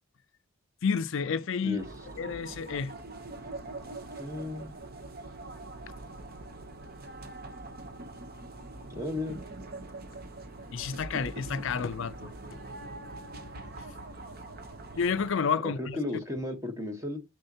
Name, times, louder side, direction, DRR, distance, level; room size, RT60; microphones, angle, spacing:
voice 1, 0.8-1.8 2.2-2.9 10.7-12.3 15.0-16.0, left 6 dB, 60° left, 0.4 m, -30 dB
sound 1, 1.8-15.3, right 2 dB, 45° right, 0.8 m, -43 dB
voice 2, 3.8-4.8 8.9-9.4 15.6-17.2, left 2 dB, 15° right, 1.1 m, -35 dB
6.6 x 6.3 x 2.8 m
head